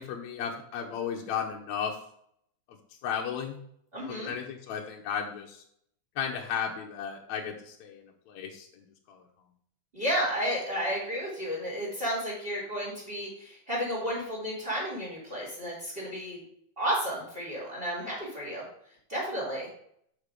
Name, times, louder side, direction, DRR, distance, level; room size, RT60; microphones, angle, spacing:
voice 1, 0.0-2.0 3.0-3.6 4.1-5.6 6.2-8.0 8.3-8.7 9.1-9.2, left 7 dB, 75° left, 1 dB, 2.1 m, -34 dB
voice 2, 3.9-4.3 9.9-16.4 16.8-18.6 19.1-19.7, equal, 20° right, -4 dB, 2.3 m, -32 dB
6.7 x 6.6 x 4.9 m, 0.68 s
omnidirectional pair, 3.4 m